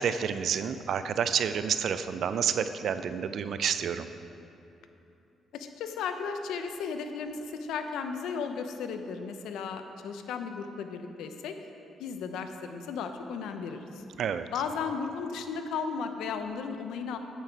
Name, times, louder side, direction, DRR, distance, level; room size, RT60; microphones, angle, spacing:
voice 1, 0.0-4.1 14.2-14.5, right 7 dB, 65° right, 11 dB, 0.4 m, -29 dB
voice 2, 5.5-11.6 12.0-13.9 14.5-17.2, left 5 dB, 85° left, 7 dB, 0.7 m, -35 dB
8.9 x 8.0 x 4.6 m, 2.8 s
cardioid pair, 90°, 0 cm